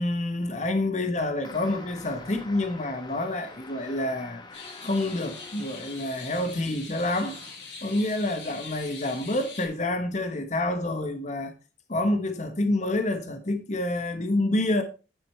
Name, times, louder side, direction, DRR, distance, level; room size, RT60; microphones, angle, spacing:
voice 1, 0.0-7.4 7.8-11.5 11.9-14.8, left 1 dB, 40° left, 1.1 m, -28 dB
sound 1, 1.4-6.5 7.2-7.7, left 2 dB, 25° left, 1.3 m, -46 dB
sound 2, 4.5-9.7, left 4 dB, 80° left, 5.6 m, -43 dB
10.0 x 6.7 x 4.4 m
head